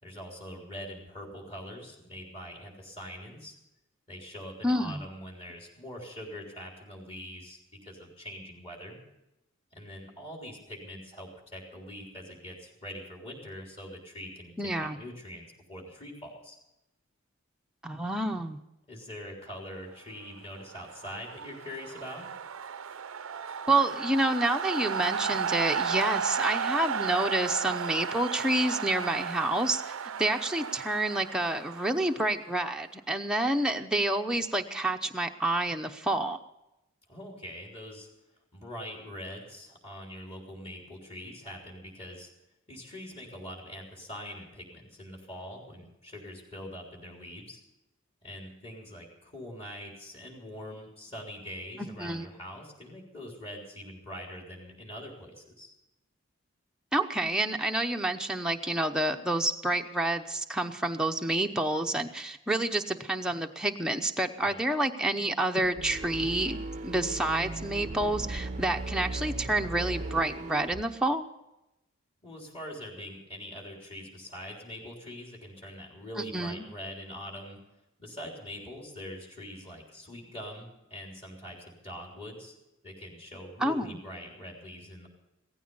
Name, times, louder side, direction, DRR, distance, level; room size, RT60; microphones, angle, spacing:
voice 1, 0.0-3.6 4.1-9.0 9.7-16.6 18.9-22.3 37.1-38.1 38.5-42.3 42.7-47.6 48.2-55.7 64.4-64.6 72.2-77.6 78.0-82.5 82.8-85.1, equal, 30° left, -1 dB, 3.7 m, -43 dB
voice 2, 4.6-5.0 14.6-15.0 17.8-18.6 23.7-29.8 30.2-36.4 51.8-52.3 56.9-66.6 66.8-71.2 76.2-76.6 83.6-83.9, right 1 dB, 5° right, 3 dB, 0.8 m, -28 dB
sound 1, 20.6-32.5, right 6 dB, 85° right, 0.6 m, -34 dB
sound 2, 65.6-70.8, right 2 dB, 35° right, 0.6 m, -37 dB
16.5 x 15.0 x 5.5 m, 0.90 s
head